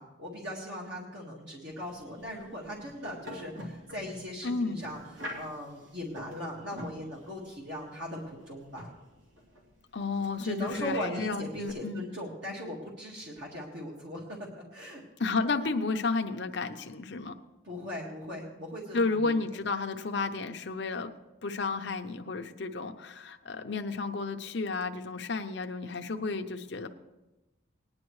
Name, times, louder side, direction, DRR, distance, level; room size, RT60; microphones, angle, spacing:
voice 1, 0.0-8.8 10.4-15.0 17.6-19.3, equal, 55° right, -3 dB, 1.8 m, -39 dB
sound 1, 1.7-11.7, equal, 75° right, 2.8 m, -47 dB
voice 2, 4.4-4.8 9.9-12.0 15.2-17.3 18.9-21.1 21.4-26.9, left 3 dB, 55° left, 6 dB, 0.7 m, -32 dB
19.0 x 10.5 x 3.2 m, 1.0 s
head